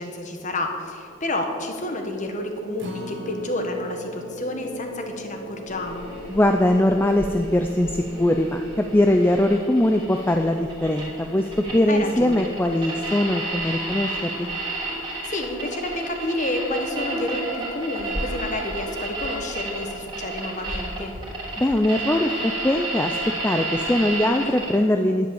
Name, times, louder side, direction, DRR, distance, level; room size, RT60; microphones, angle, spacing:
voice 1, 0.0-6.1 11.9-12.5 15.2-21.1, left 1 dB, 35° left, 4 dB, 1.4 m, -30 dB
sound 1, 1.0-12.8, left 1 dB, 80° left, 2.5 m, -41 dB
Acoustic guitar, 2.8-9.1 9.5-9.6 10.0-10.1, right 2 dB, 55° right, 1.7 m, -44 dB
sound 2, 5.7-24.7, right 2 dB, 20° right, 2.8 m, -32 dB
voice 2, 6.3-14.5 21.6-23.2 23.4-25.3, left 1 dB, 10° left, 5 dB, 0.4 m, -21 dB
10.5 x 10.5 x 7.0 m, 2.5 s
head